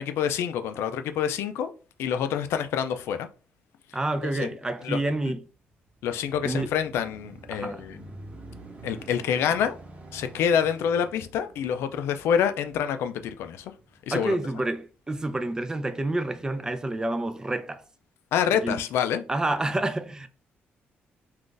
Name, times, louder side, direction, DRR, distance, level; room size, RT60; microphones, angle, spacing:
voice 1, 0.0-1.7 2.0-3.3 4.4-4.5 4.8-5.0 6.0-8.0 8.8-9.8 10.1-13.7 14.1-14.4 18.3-19.2, left 8 dB, 85° left, 0.4 m, -27 dB
voice 2, 3.9-5.5 6.4-6.7 7.5-7.9 14.1-17.8 18.6-18.8 19.3-20.3, right 2 dB, 15° right, 0.4 m, -28 dB
sound 1, 5.7-14.5 15.1-15.2, right 2 dB, 35° right, 0.9 m, -48 dB
2.5 x 2.4 x 3.7 m
cardioid pair, 90°, 4 cm